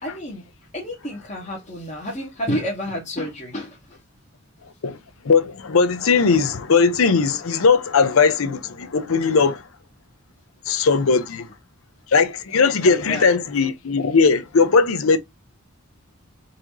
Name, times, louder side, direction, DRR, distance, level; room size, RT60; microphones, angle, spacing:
voice 1, 0.0-0.4 0.7-4.0 12.8-13.3, equal, 35° left, 1.1 m, -30 dB
voice 2, 5.2-9.6 10.7-11.5 12.1-15.2, left 5 dB, 80° left, 0.6 m, -18 dB
4.1 x 2.6 x 2.9 m
head